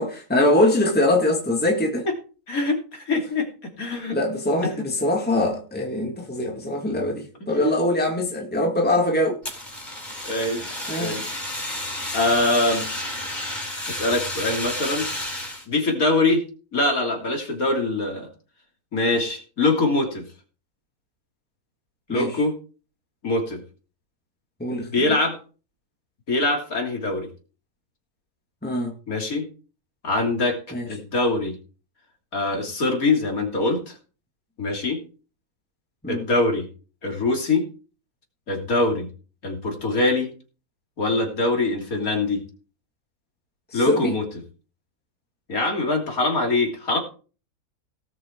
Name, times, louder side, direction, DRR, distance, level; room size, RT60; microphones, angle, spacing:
voice 1, 0.0-2.1 4.1-9.4 10.9-11.2 22.1-22.4 24.6-25.2 28.6-28.9 30.7-30.9 36.0-36.3 43.7-44.1, left 1 dB, 5° left, 2.1 m, -23 dB
voice 2, 2.5-3.5 3.8-4.2 10.2-10.6 11.0-11.3 12.1-12.8 13.8-15.1 15.7-16.4 16.7-18.3 18.9-20.2 22.1-22.5 23.2-23.6 24.9-25.4 26.3-27.3 29.1-29.5 30.0-30.6 30.9-31.5 32.3-33.9 34.6-35.0 36.1-36.7 37.0-37.6 38.5-39.1 39.4-40.3 41.0-42.4 43.7-44.2 45.5-47.0, left 2 dB, 65° left, 3.5 m, -23 dB
Fire, 9.4-15.7, left 1 dB, 30° left, 4.6 m, -31 dB
18.5 x 6.2 x 4.6 m
omnidirectional pair, 1.6 m